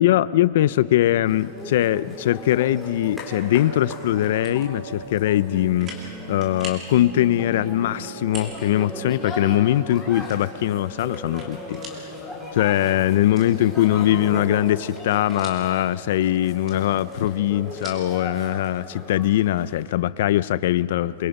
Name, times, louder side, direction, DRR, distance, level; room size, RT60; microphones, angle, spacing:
voice 1, 0.0-5.9 6.3-11.8 12.5-21.3, left 13 dB, 60° left, 17 dB, 0.5 m, -21 dB
sound 1, 0.7-19.8, right 1 dB, 40° right, 5.8 m, -41 dB
sound 2, 1.3-19.8, left 1 dB, ahead, 3.8 m, -39 dB
sound 3, 4.2-4.7 5.2-5.3 5.8-6.1 6.4-6.9 8.2-8.6 9.0-9.1 10.3-12.0 12.4-12.5 13.3-14.1 14.6-15.8 16.5-18.1, right 1 dB, 20° right, 3.0 m, -41 dB
28.0 x 23.0 x 5.4 m, 2.4 s
supercardioid pair, 175°, 0 cm